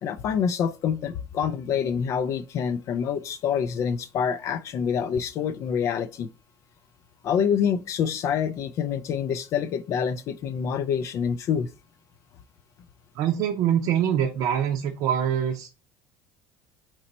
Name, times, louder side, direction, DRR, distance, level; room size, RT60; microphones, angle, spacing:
voice 1, 0.0-6.3 7.2-11.7, left 7 dB, 55° left, 0.3 m, -26 dB
voice 2, 13.1-15.7, right 9 dB, 70° right, 0.6 m, -24 dB
4.0 x 3.0 x 4.1 m
supercardioid pair, 100°, 6 cm